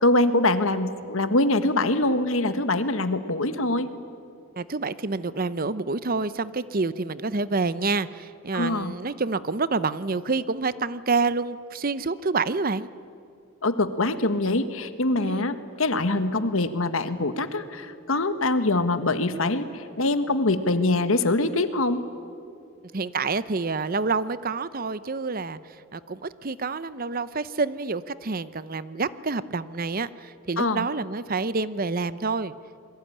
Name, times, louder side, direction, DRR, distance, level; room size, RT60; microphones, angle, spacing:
voice 1, 0.0-3.9 8.5-8.9 13.6-22.0 30.6-30.9, left 2 dB, 75° left, 11 dB, 1.6 m, -24 dB
voice 2, 4.6-12.9 15.2-15.4 22.9-25.6 25.9-32.5, right 4 dB, 45° right, 16 dB, 0.8 m, -28 dB
27.0 x 22.0 x 10.0 m, 2.4 s
head